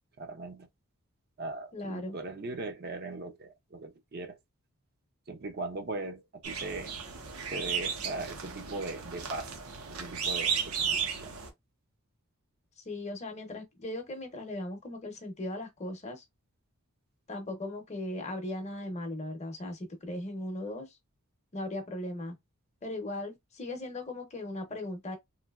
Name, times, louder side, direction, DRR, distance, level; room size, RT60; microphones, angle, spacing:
voice 1, 0.2-0.7 1.4-4.4 5.3-6.9 7.5-9.6 9.9-11.3, right 2 dB, 45° right, 0.5 m, -39 dB
voice 2, 1.7-2.2 12.8-16.2 17.3-21.0 21.5-22.4 22.8-25.2, left 1 dB, 30° left, 0.7 m, -38 dB
sound 1, 6.4-11.5, right 6 dB, 80° right, 0.8 m, -34 dB
3.2 x 2.7 x 2.3 m
head